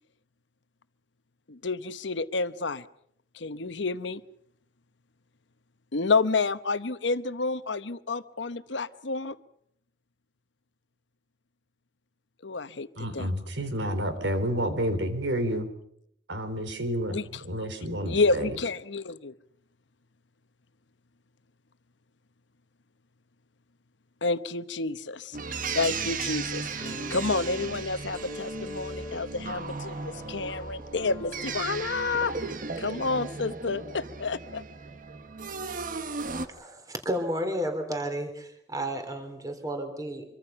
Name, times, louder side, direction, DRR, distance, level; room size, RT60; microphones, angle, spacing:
voice 1, 1.5-2.9 3.3-4.2 5.9-9.4 12.4-13.3 17.1-17.4 18.0-19.4 24.2-32.3 32.8-34.6, left 3 dB, 75° left, 13 dB, 1.0 m, -29 dB
voice 2, 13.0-15.7 16.3-18.5, equal, 75° right, 9 dB, 3.8 m, -30 dB
sound 1, 25.3-36.5, right 4 dB, 45° right, 1.2 m, -36 dB
sound 2, 26.8-33.0 34.0-34.1, left 1 dB, 10° left, 3.2 m, -43 dB
voice 3, 36.3-40.2, equal, 20° right, 6 dB, 3.6 m, -32 dB
25.5 x 24.5 x 5.9 m, 0.70 s
head